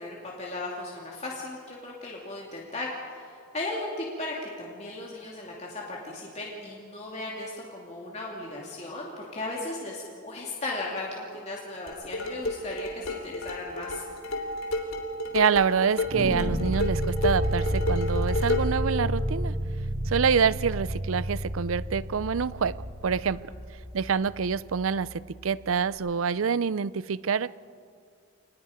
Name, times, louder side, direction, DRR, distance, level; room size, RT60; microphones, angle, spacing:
voice 1, 0.0-14.0 23.2-23.6, left 2 dB, 30° left, -3 dB, 2.8 m, -36 dB
sound 1, 11.9-18.8, left 1 dB, 85° left, 3.1 m, -31 dB
voice 2, 15.3-19.5 20.1-23.4 23.9-27.5, right 6 dB, 80° right, 19 dB, 0.5 m, -26 dB
sound 2, 16.0-25.1, equal, 60° right, 4.9 m, -31 dB
27.5 x 20.0 x 5.1 m, 2.3 s
head